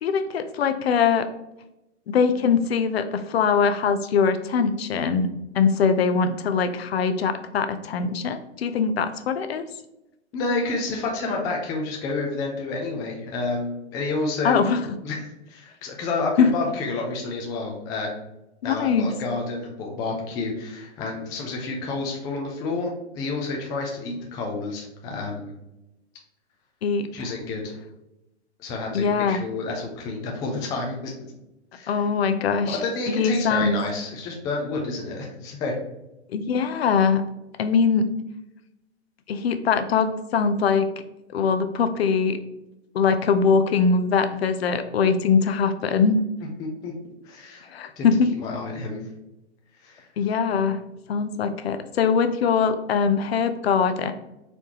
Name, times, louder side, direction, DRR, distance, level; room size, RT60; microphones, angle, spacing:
voice 1, 0.0-1.3 2.1-5.3 5.5-9.6 14.4-14.8 16.4-16.5 18.6-19.1 26.8-27.1 28.9-29.4 31.9-32.8 33.1-33.8 36.3-37.2 37.6-38.1 39.3-40.9 41.3-42.4 42.9-46.2 47.7-48.3 50.2-50.8 51.1-54.1, left 5 dB, 60° left, 10 dB, 0.6 m, -22 dB
voice 2, 10.3-14.6 15.0-18.1 18.6-25.5 27.1-27.7 28.6-31.3 31.7-32.1 32.7-35.7 46.6-46.9 47.2-47.7 48.0-48.1 48.4-49.0 49.8-50.1, left 3 dB, 10° left, 0 dB, 0.4 m, -29 dB
4.1 x 3.3 x 2.8 m, 0.91 s
hypercardioid pair, 120°, 35 cm